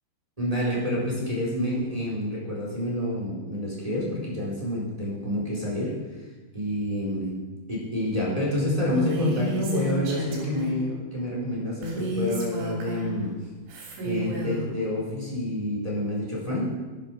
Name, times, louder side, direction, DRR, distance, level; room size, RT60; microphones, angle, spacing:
voice 1, 0.4-5.9 6.5-7.3 7.7-13.3 14.0-16.7, left 1 dB, 10° right, -4 dB, 3.6 m, -28 dB
Female speech woman speaking, 8.9-10.8 11.8-13.2 13.7-14.7, right 1 dB, 75° right, 5.4 m, -31 dB
13.0 x 11.0 x 6.3 m, 1.2 s
omnidirectional pair, 5.4 m